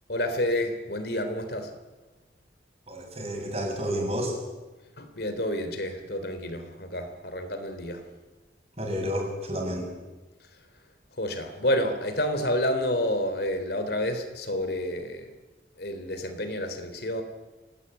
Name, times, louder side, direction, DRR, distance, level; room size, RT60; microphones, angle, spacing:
voice 1, 0.1-1.7 5.0-8.0 11.2-15.3 15.8-17.2, left 1 dB, 60° left, 8 dB, 3.3 m, -29 dB
voice 2, 2.9-4.3 8.8-9.9, equal, 35° right, 1 dB, 6.8 m, -30 dB
26.5 x 18.5 x 10.0 m, 1.2 s
head